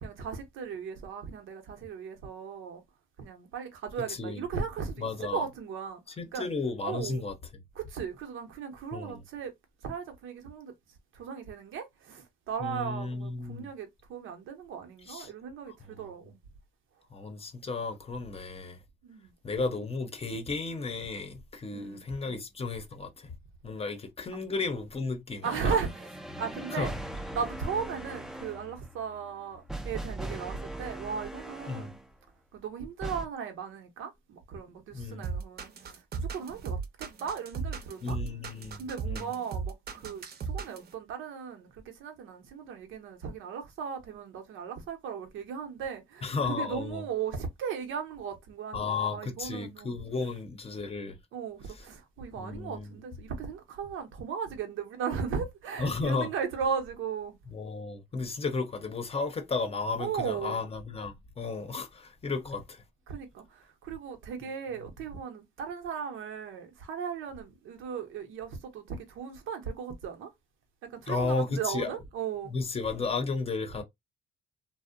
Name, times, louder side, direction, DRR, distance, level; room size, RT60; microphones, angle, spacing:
voice 1, 0.0-2.8 3.2-6.0 6.3-6.5 6.8-7.3 7.7-9.5 9.8-10.7 11.1-16.4 19.0-19.3 21.7-22.4 24.3-24.4 25.4-26.9 27.3-32.0 32.5-38.2 38.7-49.9 51.3-57.4 60.0-60.6 63.1-70.3 70.8-72.5, right 6 dB, 85° right, 0.8 m, -37 dB
voice 2, 4.1-4.4 5.0-5.5 6.2-7.4 8.9-9.2 12.6-13.7 15.1-15.3 15.9-16.1 17.1-18.8 19.4-23.4 23.6-25.8 26.7-26.9 31.7-31.9 34.9-35.2 38.0-39.3 46.2-47.0 48.7-51.2 52.4-52.9 55.8-56.3 57.5-62.8 71.1-71.9 72.5-73.8, left 4 dB, 30° left, 0.7 m, -33 dB
sound 1, 25.4-32.1 33.0-33.3, right 1 dB, 5° right, 0.4 m, -40 dB
sound 2, 35.2-40.9, right 5 dB, 55° right, 0.7 m, -35 dB
2.6 x 2.0 x 2.5 m
cardioid pair, 90°, 20 cm